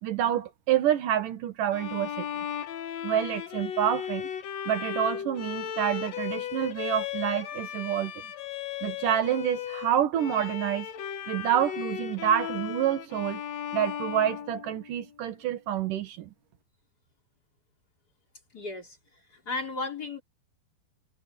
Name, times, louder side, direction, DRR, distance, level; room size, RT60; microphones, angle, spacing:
voice 1, 0.0-2.3 3.0-4.3 4.7-8.1 8.8-10.9 11.3-13.4 13.7-16.3, right 10 dB, 60° right, 2.6 m, -28 dB
Bowed string instrument, 1.7-15.2, left 9 dB, 80° left, 1.5 m, -36 dB
voice 2, 18.5-20.2, left 3 dB, 25° left, 3.7 m, -35 dB
omnidirectional pair, 5.0 m